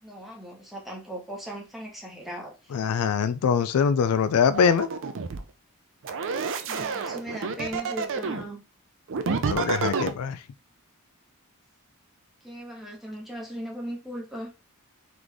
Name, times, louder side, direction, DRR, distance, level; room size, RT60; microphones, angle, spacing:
voice 1, 0.0-2.7 6.7-8.6 12.4-14.5, equal, ahead, 1.2 m, -38 dB
voice 2, 2.7-4.9 9.5-10.4, left 6 dB, 75° left, 0.3 m, -23 dB
sound 1, 4.5-5.4 6.0-8.5 9.1-10.1, right 5 dB, 60° right, 0.5 m, -29 dB
3.9 x 3.2 x 3.5 m
head